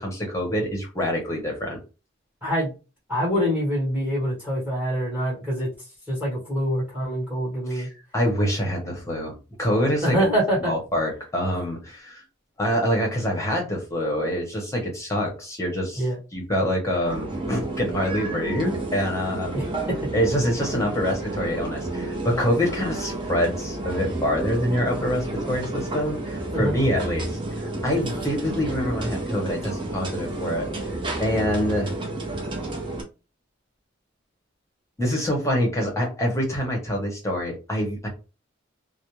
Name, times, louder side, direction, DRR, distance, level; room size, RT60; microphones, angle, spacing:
voice 1, 0.0-1.8 7.7-7.9 8.1-10.2 10.6-12.2 12.6-16.0 16.3-19.6 20.1-30.7 31.2-31.9 35.0-38.1, equal, 15° left, -1 dB, 0.9 m, -25 dB
voice 2, 2.4-2.7 3.1-5.7 6.1-7.9 10.0-10.7 15.9-16.2 19.5-20.0 26.5-26.7, equal, 10° right, -6 dB, 1.1 m, -25 dB
sound 1, 17.0-33.0, right 2 dB, 25° right, 0.6 m, -31 dB
2.5 x 2.1 x 3.0 m, 0.30 s
head